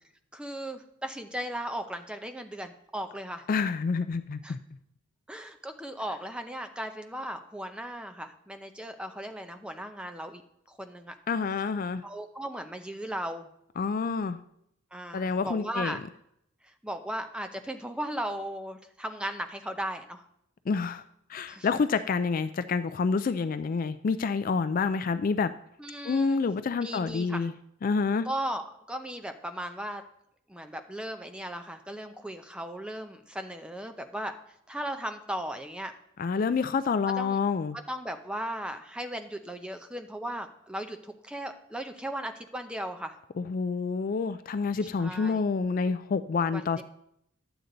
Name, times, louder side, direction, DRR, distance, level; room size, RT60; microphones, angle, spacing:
voice 1, 0.3-3.5 4.4-4.6 5.3-10.4 10.7-11.1 12.0-13.5 14.9-16.0 16.8-20.2 21.5-21.7 25.8-26.4 26.8-27.4 28.2-30.0 30.5-34.3 34.7-35.9 37.2-37.4 37.9-43.2 44.8-45.4 46.5-46.8, right 1 dB, 5° right, 7 dB, 0.6 m, -37 dB
voice 2, 3.5-4.6 11.3-12.0 13.8-14.4 15.1-16.0 20.7-21.0 21.3-25.5 26.0-27.5 27.8-28.3 36.2-37.8 43.4-46.8, left 5 dB, 40° left, 12 dB, 0.3 m, -28 dB
11.0 x 8.0 x 3.9 m, 0.75 s
head